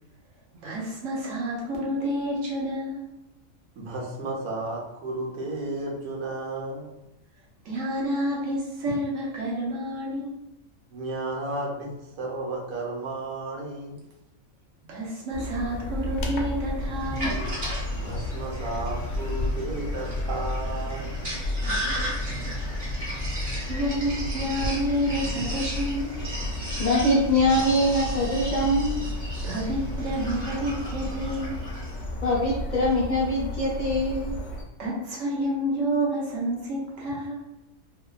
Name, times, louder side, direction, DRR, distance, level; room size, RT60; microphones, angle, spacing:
voice 1, 0.6-3.0 7.6-10.4 14.9-17.4 22.2-22.6 23.4-26.4 29.4-31.6 34.8-37.5, equal, 70° right, -4 dB, 1.2 m, -29 dB
voice 2, 3.8-6.9 10.9-11.9 12.2-14.0 17.9-21.2, right 2 dB, 90° right, -2 dB, 1.2 m, -33 dB
sound 1, 15.3-34.6, left 1 dB, 75° left, 0.9 m, -32 dB
Sink (filling or washing), 17.0-32.0, right 1 dB, 50° right, 1.4 m, -36 dB
voice 3, 26.8-29.1 32.2-34.4, left 1 dB, 50° left, -8 dB, 0.6 m, -23 dB
2.9 x 2.2 x 2.3 m, 0.94 s
omnidirectional pair, 1.4 m